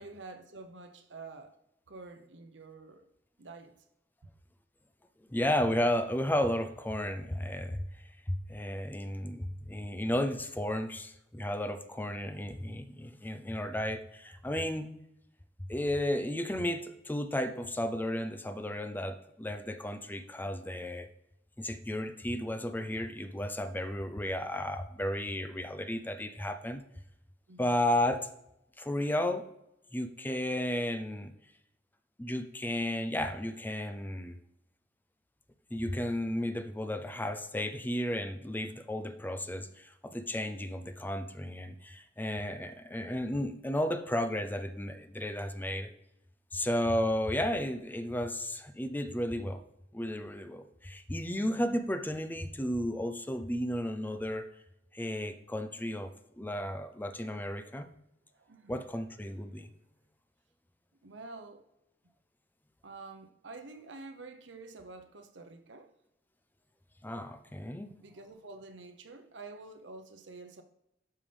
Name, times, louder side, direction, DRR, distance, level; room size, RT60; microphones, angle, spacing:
voice 1, 0.0-1.6 1.9-3.1 3.4-3.7 27.5-27.8 58.3-58.8 61.0-61.7 62.8-65.9 67.5-67.6 68.0-70.6, right 3 dB, 85° right, 0.9 m, -48 dB
voice 2, 5.3-7.8 8.3-14.9 15.7-21.1 21.6-26.8 27.6-28.3 28.8-29.4 29.9-31.3 32.2-34.4 35.7-45.9 46.5-49.6 49.9-54.5 54.9-56.1 56.4-57.9 58.7-59.7 67.0-67.9, left 1 dB, 10° left, 0.5 m, -33 dB
12.0 x 5.6 x 3.4 m
head